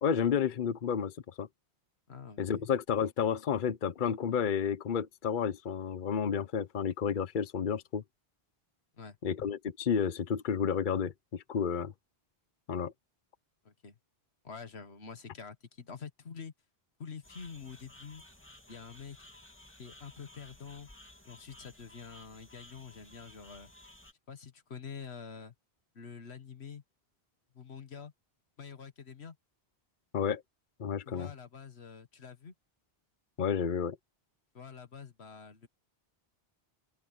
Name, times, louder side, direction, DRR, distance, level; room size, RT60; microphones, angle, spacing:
voice 1, 0.0-1.5 2.4-8.0 9.2-11.9 12.7-12.9 30.1-30.4 30.8-31.3 33.4-34.0, left 7 dB, 55° left, 1.0 m, -31 dB
voice 2, 2.1-2.6 9.0-9.2 13.7-13.9 14.4-16.5 17.0-18.2 18.7-19.3 19.8-20.9 21.3-23.7 24.3-25.5 26.0-26.8 27.5-28.1 28.6-29.4 31.1-32.5 34.5-35.7, left 6 dB, 90° left, 1.7 m, -47 dB
sound 1, 17.2-24.1, left 1 dB, 10° left, 2.6 m, -55 dB
open air
omnidirectional pair, 1.1 m